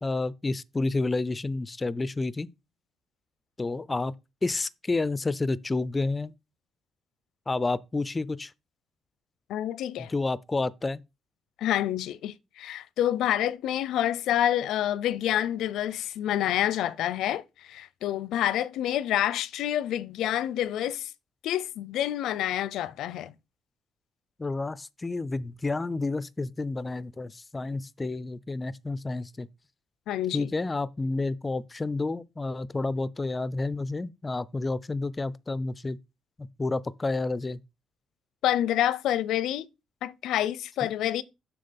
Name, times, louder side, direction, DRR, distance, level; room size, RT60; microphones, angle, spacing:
voice 1, 0.0-2.5 3.6-4.1 4.4-6.3 7.5-8.5 10.0-11.0 24.4-29.5 30.3-36.0 36.4-37.6, left 3 dB, 15° left, 0.4 m, -30 dB
voice 2, 9.5-10.1 11.6-21.1 21.4-23.3 30.1-30.5 38.4-39.7 40.0-41.2, left 12 dB, 90° left, 0.6 m, -28 dB
7.7 x 6.0 x 5.2 m
cardioid pair, 155°, 0 cm